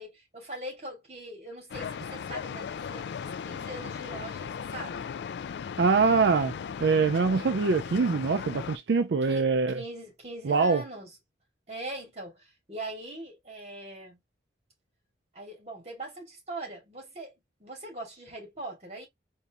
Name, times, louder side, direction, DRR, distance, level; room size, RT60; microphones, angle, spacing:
voice 1, 0.0-5.1 9.2-11.1 11.7-14.2 15.3-17.3 17.6-19.1, right 1 dB, 35° right, 2.2 m, -41 dB
sound 1, 1.7-8.8, left 7 dB, 70° left, 0.3 m, -37 dB
voice 2, 5.8-6.5 6.8-9.8 10.4-10.8, right 4 dB, 75° right, 0.4 m, -24 dB
4.2 x 2.7 x 3.5 m
head